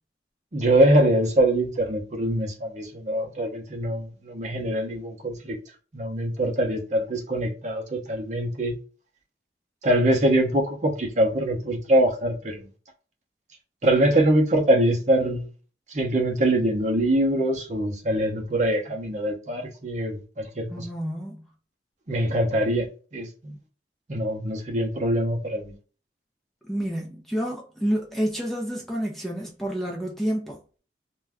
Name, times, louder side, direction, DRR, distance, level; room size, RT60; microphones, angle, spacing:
voice 1, 0.5-5.6 5.9-8.7 9.8-12.7 13.8-15.5 15.9-20.9 22.1-22.9 23.1-23.5 24.1-25.7, right 1 dB, 40° right, 0.7 m, -23 dB
voice 2, 20.7-21.5 26.7-30.6, equal, ahead, 0.5 m, -29 dB
2.6 x 2.2 x 3.4 m
head